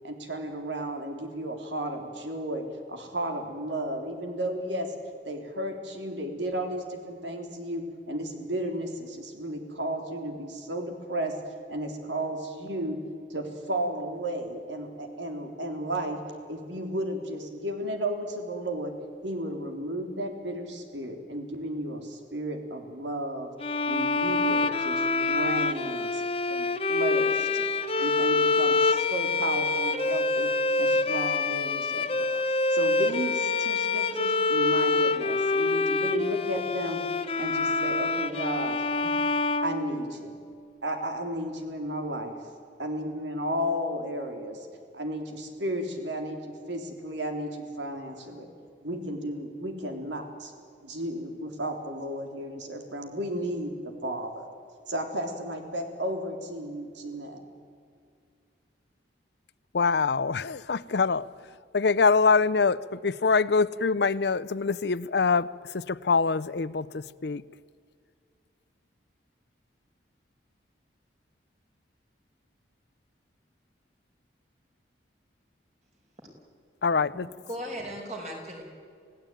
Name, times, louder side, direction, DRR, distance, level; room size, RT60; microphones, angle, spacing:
voice 1, 0.0-2.6 2.9-4.9 5.2-11.3 11.7-13.0 13.3-16.2 16.4-18.9 19.2-23.5 23.9-27.7 27.9-30.5 30.8-32.3 32.7-37.0 37.4-38.8 39.6-40.3 40.8-42.3 42.8-44.7 44.9-48.5 48.8-50.5 50.8-53.7 54.0-54.4 54.9-57.4, right 1 dB, 80° right, 3.5 m, -33 dB
sound 1, 23.6-40.4, left 3 dB, 30° left, 1.0 m, -26 dB
voice 2, 59.7-67.4 76.8-77.3, left 4 dB, 65° left, 0.6 m, -25 dB
voice 3, 77.1-78.6, equal, 40° right, 5.4 m, -38 dB
27.5 x 17.5 x 9.2 m
head